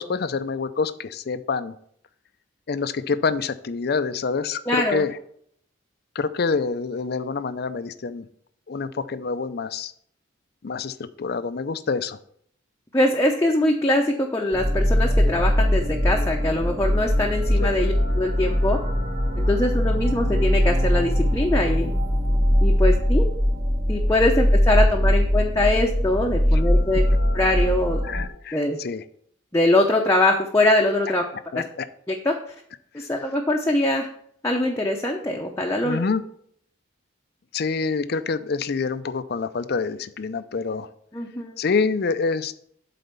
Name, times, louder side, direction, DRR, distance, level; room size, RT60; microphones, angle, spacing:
voice 1, 0.0-1.8 2.7-5.2 6.1-8.3 8.7-9.9 10.6-12.2 17.6-17.7 26.5-26.6 28.0-29.0 31.5-31.9 33.0-33.1 35.8-36.2 37.5-40.9 41.6-42.5, left 4 dB, 55° left, 13 dB, 0.5 m, -26 dB
voice 2, 4.7-5.0 12.9-18.8 19.4-22.0 22.6-23.3 23.9-27.0 27.3-28.0 28.5-28.8 29.5-31.2 31.5-31.6 32.1-32.4 32.9-34.1 34.4-36.0 41.1-41.5, left 1 dB, 15° left, 0 dB, 0.6 m, -22 dB
sound 1, 14.5-28.3, equal, 45° right, 1.4 m, -21 dB
7.9 x 4.2 x 6.8 m, 0.65 s
head